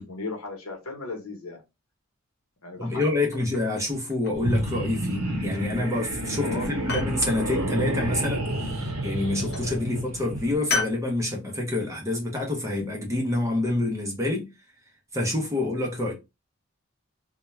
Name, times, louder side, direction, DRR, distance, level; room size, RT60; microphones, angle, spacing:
voice 1, 0.0-1.6 2.6-3.4 6.4-6.7 9.8-9.9, left 3 dB, 70° left, 0.9 m, -37 dB
voice 2, 2.8-14.5 15.1-16.1, left 2 dB, 15° right, 0.6 m, -27 dB
sound 1, 3.0-3.7 4.1-4.7 5.5-6.0 6.3-7.2 8.6-9.1 9.5-9.8 10.7-11.0, left 4 dB, 45° left, 0.6 m, -33 dB
sound 2, 4.3-10.5, right 1 dB, 70° right, 0.9 m, -29 dB
2.2 x 2.2 x 3.0 m
head